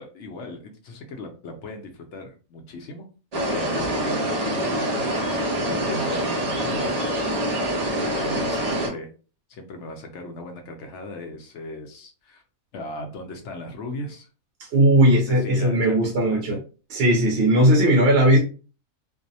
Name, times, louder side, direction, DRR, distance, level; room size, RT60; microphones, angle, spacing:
voice 1, 0.0-3.0 3.3-7.3 8.0-9.1 9.5-12.4 12.7-14.3 15.0-16.6, left 2 dB, 65° left, 4 dB, 0.8 m, -37 dB
sound 1, 3.3-8.9, right 1 dB, 85° right, 0.3 m, -25 dB
voice 2, 14.7-16.6 16.9-18.4, right 1 dB, 60° right, -1 dB, 0.7 m, -18 dB
2.6 x 2.0 x 2.6 m, 0.36 s
omnidirectional pair, 1.6 m